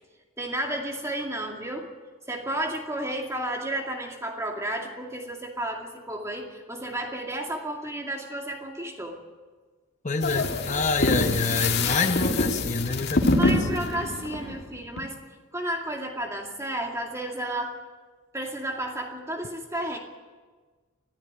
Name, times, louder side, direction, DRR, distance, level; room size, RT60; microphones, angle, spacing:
voice 1, 0.4-1.9 2.3-9.2 13.3-15.2 15.5-17.8 18.3-20.0, right 1 dB, 15° right, 2 dB, 2.3 m, -32 dB
voice 2, 10.0-13.6, left 3 dB, 35° left, 6 dB, 0.9 m, -27 dB
sound 1, 10.2-15.0, left 2 dB, 50° left, 2.1 m, -25 dB
20.5 x 13.5 x 9.8 m, 1.4 s
head